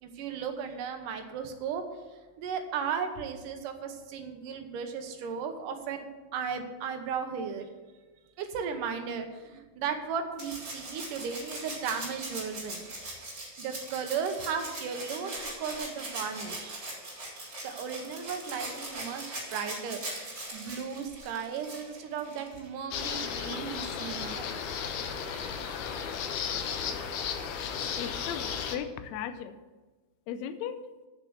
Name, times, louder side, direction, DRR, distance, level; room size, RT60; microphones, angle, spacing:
voice 1, 0.0-1.8 2.4-6.1 6.3-7.7 8.4-12.8 13.6-16.8 17.6-19.2 19.5-20.1 20.5-24.5, right 6 dB, 75° right, 6 dB, 2.5 m, -35 dB
Rattle (instrument), 10.4-22.7 24.1-24.2, right 1 dB, 30° right, 3.7 m, -40 dB
sound 1, 22.9-28.8, left 7 dB, 70° left, 2.1 m, -34 dB
voice 2, 28.0-29.5 30.3-30.8, left 9 dB, 90° left, 10 dB, 1.5 m, -36 dB
8.3 x 6.8 x 7.9 m, 1.2 s
omnidirectional pair, 4.1 m